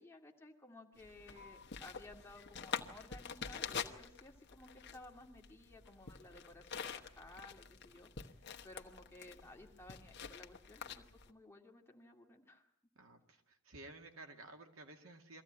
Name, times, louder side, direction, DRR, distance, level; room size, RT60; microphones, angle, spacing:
voice 1, 0.0-12.6, left 2 dB, 10° left, 1 dB, 2.2 m, -57 dB
sound 1, 1.0-11.3, left 6 dB, 55° left, 1.2 m, -47 dB
voice 2, 13.0-15.4, right 2 dB, 90° right, 4 dB, 2.4 m, -54 dB
23.0 x 15.5 x 8.8 m, 0.81 s
head